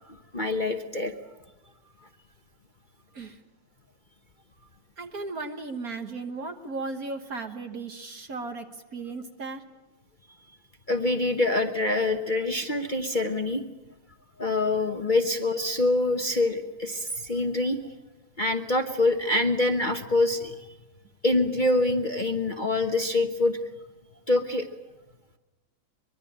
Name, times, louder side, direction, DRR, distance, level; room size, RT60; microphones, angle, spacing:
voice 1, 0.1-1.2 10.9-13.6 14.4-17.8 18.4-20.6 21.2-23.6 24.3-24.7, left 2 dB, 30° left, 5 dB, 1.0 m, -25 dB
voice 2, 5.0-9.6, right 3 dB, 50° right, 5 dB, 1.7 m, -36 dB
24.0 x 22.0 x 8.7 m, 1.1 s
omnidirectional pair, 2.2 m